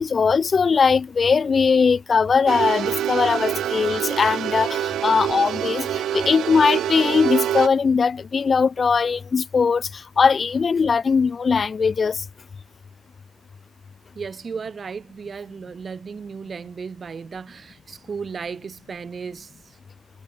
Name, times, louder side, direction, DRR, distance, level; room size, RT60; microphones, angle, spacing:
voice 1, 0.0-12.2, left 5 dB, 40° left, 0.5 m, -20 dB
sound 1, 2.5-7.7, right 11 dB, 75° right, 0.4 m, -26 dB
voice 2, 14.1-19.8, right 5 dB, 40° right, 1.2 m, -35 dB
cardioid pair, 90°, 0 cm